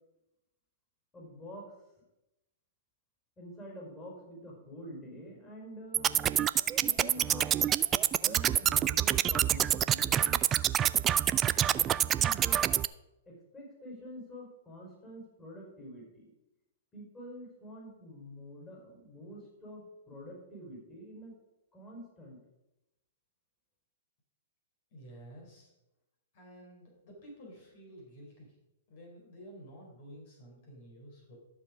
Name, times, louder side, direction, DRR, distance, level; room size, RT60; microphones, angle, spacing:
voice 1, 1.1-1.7 3.4-6.1 6.8-7.6 8.1-10.4 12.2-12.7 13.3-16.3 16.9-21.3 21.7-22.4, equal, 15° left, -2 dB, 4.9 m, -47 dB
sound 1, 5.9-12.9, right 11 dB, 25° right, 0.4 m, -27 dB
voice 2, 24.9-25.7 26.3-28.6 28.9-31.4, equal, 50° left, -2 dB, 4.6 m, -51 dB
13.0 x 6.9 x 5.1 m, 0.93 s
figure-of-eight pair, 115°, 0 cm